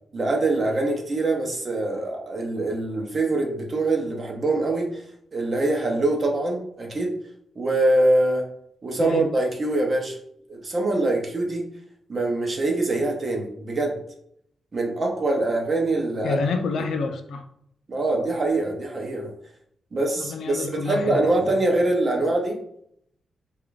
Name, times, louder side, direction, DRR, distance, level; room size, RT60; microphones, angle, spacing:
voice 1, 0.1-5.0 5.3-7.1 7.6-8.4 8.8-10.2 10.5-11.6 12.1-13.9 14.7-16.4 17.9-19.3 19.9-22.6, right 2 dB, 30° right, 1 dB, 0.7 m, -24 dB
voice 2, 16.2-17.5 20.2-21.5, left 4 dB, 70° left, 7 dB, 0.4 m, -28 dB
4.8 x 2.4 x 2.4 m, 0.70 s
wide cardioid pair, 170°, 0 cm